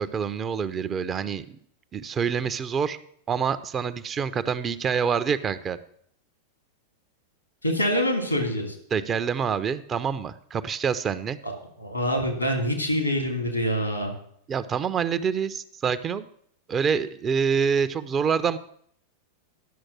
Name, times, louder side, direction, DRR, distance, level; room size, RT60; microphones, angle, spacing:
voice 1, 0.0-1.6 1.9-3.0 3.3-5.8 8.9-11.4 14.5-16.3 16.7-18.6, right 6 dB, 25° right, 13 dB, 0.5 m, -26 dB
voice 2, 7.6-8.7 11.4-11.5 11.8-14.1, equal, 85° left, 3 dB, 2.4 m, -25 dB
11.5 x 6.4 x 6.1 m, 0.64 s
figure-of-eight pair, 90°, 0 cm